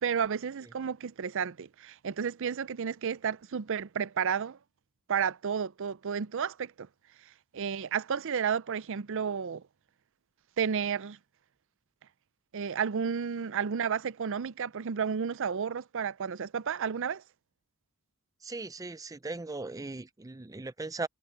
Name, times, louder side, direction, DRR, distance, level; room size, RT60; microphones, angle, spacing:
voice 1, 0.0-4.6 5.1-6.9 7.5-9.6 10.6-11.2 12.5-17.2, right 7 dB, 65° right, 0.5 m, -32 dB
voice 2, 18.4-21.1, right 3 dB, 15° right, 0.5 m, -38 dB
head